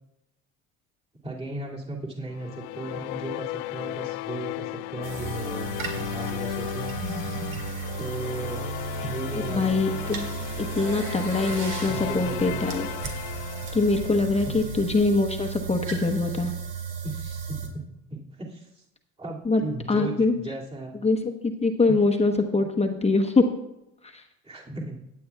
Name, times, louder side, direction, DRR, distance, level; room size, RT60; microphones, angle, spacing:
voice 1, 1.2-6.9 8.0-8.7 9.0-9.8 11.9-12.6 14.4-14.6 17.0-17.8 18.1-18.8 19.2-21.0 21.9-22.0 24.4-25.1, right 2 dB, 15° right, -5 dB, 2.4 m, -36 dB
sound 1, 2.3-14.7, left 17 dB, 80° left, 0.6 m, -35 dB
sound 2, 5.0-17.7, right 6 dB, 55° right, 2.4 m, -35 dB
voice 2, 9.3-10.3 10.6-12.9 13.7-16.5 19.4-19.6 19.9-20.4 21.0-23.5 24.1-24.2, left 3 dB, 15° left, 4 dB, 1.0 m, -23 dB
15.5 x 9.4 x 2.3 m, 0.87 s
supercardioid pair, 80°, 37 cm